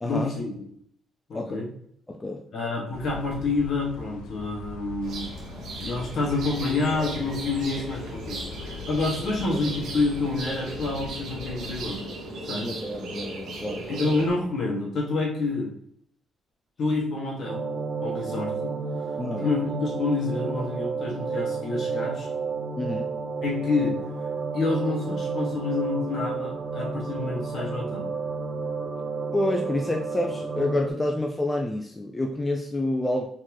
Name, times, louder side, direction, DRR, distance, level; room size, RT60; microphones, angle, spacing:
voice 1, 0.0-0.6 1.3-1.7 2.5-5.3 5.8-12.0 12.4-12.8 13.9-15.7 16.8-17.7 18.0-18.7 19.0-22.3 23.4-24.0 24.5-28.1, left 3 dB, 60° left, -2 dB, 1.8 m, -28 dB
voice 2, 2.1-2.4 12.6-13.8 19.2-19.4 22.8-23.1 29.3-33.3, left 1 dB, 20° left, 2 dB, 0.5 m, -28 dB
sound 1, 2.9-12.0, left 6 dB, 90° left, 0.3 m, -42 dB
sound 2, 5.0-14.3, right 2 dB, 70° right, 1.2 m, -37 dB
sound 3, 17.4-30.9, right 4 dB, 50° right, 0.8 m, -31 dB
4.6 x 3.7 x 3.0 m, 0.69 s
cardioid pair, 90°, 0 cm